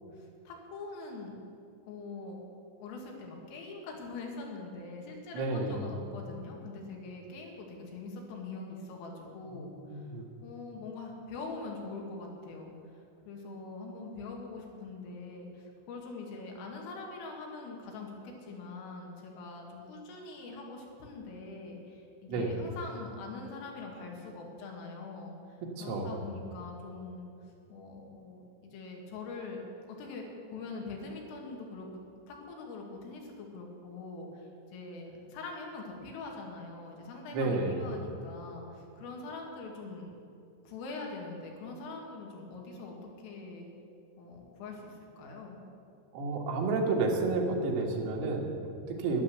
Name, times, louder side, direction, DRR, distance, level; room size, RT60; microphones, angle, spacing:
voice 1, 0.0-1.3 1.9-2.4 2.8-10.1 10.4-27.3 27.7-29.6 29.9-30.3 30.5-31.9 32.3-40.1 40.7-43.7 44.2-45.6, left 3 dB, 90° left, 0 dB, 4.7 m, -43 dB
voice 2, 5.3-5.9 9.5-10.2 22.3-22.5 25.8-26.2 37.3-37.8 46.1-49.2, right 3 dB, 80° right, 0 dB, 4.2 m, -31 dB
12.5 x 11.0 x 7.9 m, 2.7 s
omnidirectional pair, 5.7 m